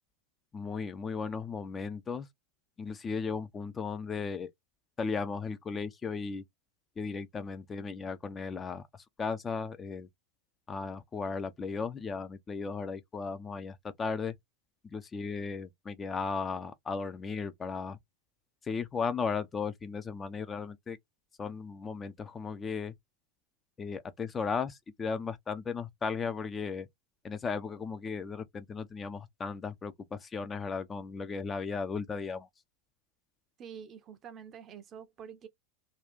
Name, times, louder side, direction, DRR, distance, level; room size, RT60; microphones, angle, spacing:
voice 1, 0.5-2.3 2.8-4.5 5.0-6.4 7.0-10.1 10.7-14.3 14.8-18.0 18.6-21.0 21.4-22.9 23.8-26.9 27.2-32.5, left 5 dB, 20° left, 0.4 m, -36 dB
voice 2, 33.6-35.5, right 7 dB, 30° right, 0.6 m, -47 dB
2.7 x 2.4 x 3.5 m
figure-of-eight pair, 90°, 0 cm